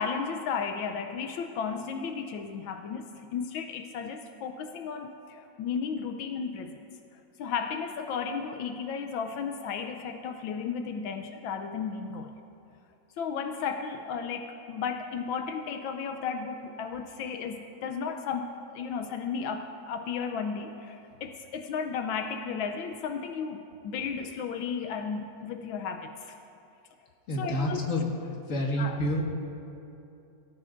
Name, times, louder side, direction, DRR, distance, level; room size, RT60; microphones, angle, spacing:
voice 1, 0.0-6.7 7.4-12.3 13.2-26.4 27.4-27.8 28.8-29.0, left 6 dB, 85° left, 6 dB, 1.4 m, -34 dB
voice 2, 27.3-28.1 28.5-29.2, equal, 40° left, -1 dB, 1.9 m, -28 dB
24.0 x 14.5 x 2.6 m, 2.7 s
omnidirectional pair, 2.1 m